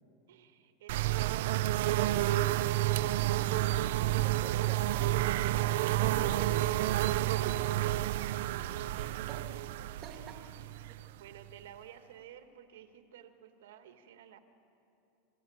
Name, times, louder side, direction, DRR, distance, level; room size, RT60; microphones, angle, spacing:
voice 1, 0.3-1.9 7.0-9.0 10.2-14.4, right 9 dB, 90° right, 6 dB, 2.1 m, -53 dB
sound 1, 0.9-11.5, right 15 dB, 55° right, 0.5 m, -30 dB
voice 2, 4.0-6.8 8.9-9.5 10.0-10.5, right 6 dB, 25° right, 5 dB, 1.6 m, -47 dB
29.0 x 21.0 x 8.2 m, 2.8 s
supercardioid pair, 175°, 0 cm